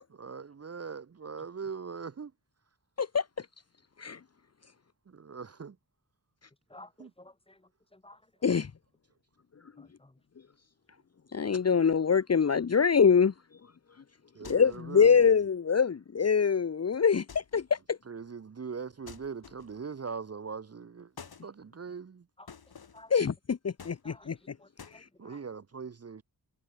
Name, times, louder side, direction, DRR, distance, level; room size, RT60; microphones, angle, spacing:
voice 1, 0.2-2.3 5.1-5.8 7.0-7.1 14.3-15.2 18.1-21.1 21.4-22.2 25.2-26.2, right 5 dB, 35° right, 0.9 m, -41 dB
voice 2, 3.0-3.5 4.0-4.2 8.4-8.7 11.3-13.3 14.4-18.0 23.1-24.5 24.9-25.1, left 6 dB, 40° left, 1.0 m, -25 dB
voice 3, 6.7-7.6 7.9-8.2 9.8-10.1 22.4-22.5 22.9-23.1 24.0-24.3 24.6-25.4, left 2 dB, 15° left, 3.2 m, -53 dB
sound 1, 14.4-15.0 17.3-17.8 19.1-19.9 21.2-21.5 22.5-23.1 23.8-24.4 24.8-25.0, left 6 dB, 65° left, 4.6 m, -50 dB
wide cardioid pair, 130°, 40 cm